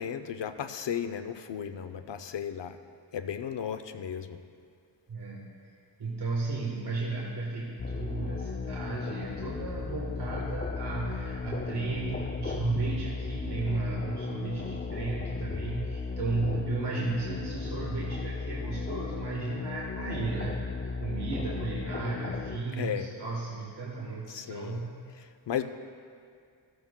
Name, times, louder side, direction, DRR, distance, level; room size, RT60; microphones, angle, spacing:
voice 1, 0.0-2.8 3.1-4.4 22.8-23.1 24.3-24.8 25.1-25.6, left 8 dB, 70° left, 9 dB, 0.7 m, -35 dB
voice 2, 5.1-5.7 6.0-20.6 21.0-25.0, right 3 dB, 60° right, -4 dB, 1.3 m, -34 dB
sound 1, 7.8-22.6, left 4 dB, 25° left, 0.4 m, -35 dB
14.5 x 13.0 x 2.2 m, 2.3 s
wide cardioid pair, 105°, 45 cm